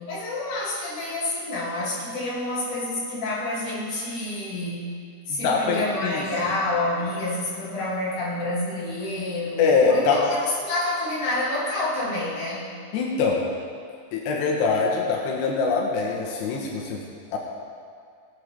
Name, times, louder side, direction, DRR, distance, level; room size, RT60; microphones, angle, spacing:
voice 1, 0.0-4.9 5.3-12.6, left 2 dB, 55° left, -7 dB, 3.6 m, -28 dB
voice 2, 5.3-6.3 9.6-10.2 12.9-13.4 14.1-17.0 17.3-17.4, left 4 dB, 90° left, -1 dB, 3.1 m, -23 dB
18.0 x 7.7 x 3.4 m, 2.2 s
omnidirectional pair, 4.7 m